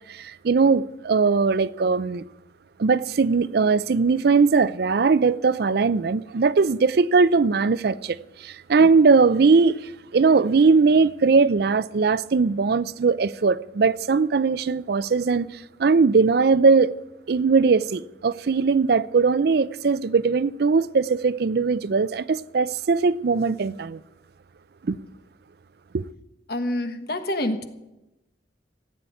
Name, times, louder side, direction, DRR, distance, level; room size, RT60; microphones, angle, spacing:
voice 1, 0.1-2.2 2.8-15.5 15.8-16.9 17.3-24.0 24.8-25.0 25.9-26.0, right 4 dB, 60° right, 0.5 m, -20 dB
voice 2, 26.5-27.6, left 1 dB, 60° left, 1.4 m, -27 dB
15.5 x 8.5 x 9.1 m
head